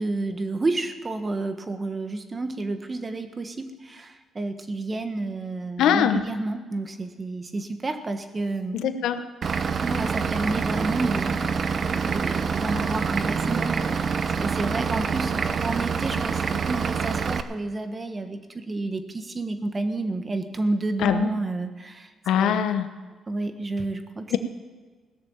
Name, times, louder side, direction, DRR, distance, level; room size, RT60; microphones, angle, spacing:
voice 1, 0.0-8.8 9.8-22.1 22.4-22.7 23.3-24.3, right 2 dB, 30° right, 8 dB, 1.4 m, -30 dB
voice 2, 5.8-6.2 8.7-9.2 21.0-21.3 22.3-22.9 24.3-24.4, left 9 dB, 80° left, 9 dB, 0.9 m, -22 dB
Vehicle / Engine, 9.4-17.4, right 6 dB, 50° right, 0.7 m, -26 dB
17.5 x 6.8 x 8.7 m, 1.4 s
cardioid pair, 90°, 0 cm